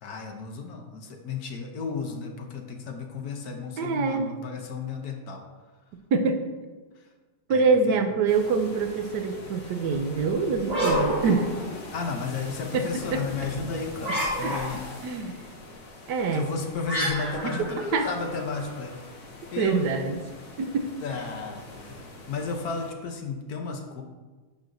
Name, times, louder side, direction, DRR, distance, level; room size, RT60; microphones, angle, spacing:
voice 1, 0.0-5.4 7.5-8.0 11.9-14.8 16.3-19.0 19.5-19.9 21.0-24.0, left 5 dB, 65° left, 3 dB, 1.2 m, -33 dB
voice 2, 3.8-4.3 6.1-6.4 7.5-11.5 12.7-13.2 14.4-14.6 15.0-15.4 16.1-16.5 17.4-18.1 19.6-20.2 20.6-20.9, right 4 dB, 75° right, 7 dB, 1.2 m, -25 dB
sound 1, 8.3-22.9, left 2 dB, 45° left, 1.4 m, -43 dB
sound 2, 10.6-12.1 14.0-15.0 16.9-18.7, equal, 35° right, 2.8 m, -29 dB
10.5 x 6.2 x 2.6 m, 1.3 s
omnidirectional pair, 1.9 m